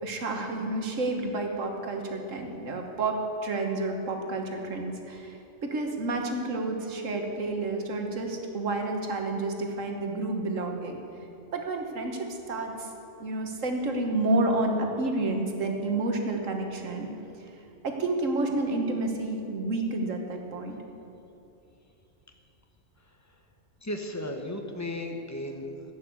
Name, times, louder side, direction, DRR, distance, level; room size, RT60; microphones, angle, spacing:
voice 1, 0.0-5.4 5.6-11.0 11.5-12.9 13.2-17.1 17.8-20.8, right 2 dB, 75° right, 3 dB, 1.7 m, -30 dB
voice 2, 23.0-23.4 23.8-25.9, left 1 dB, 15° left, 3 dB, 1.0 m, -36 dB
12.0 x 8.8 x 7.8 m, 2.8 s
omnidirectional pair, 1.3 m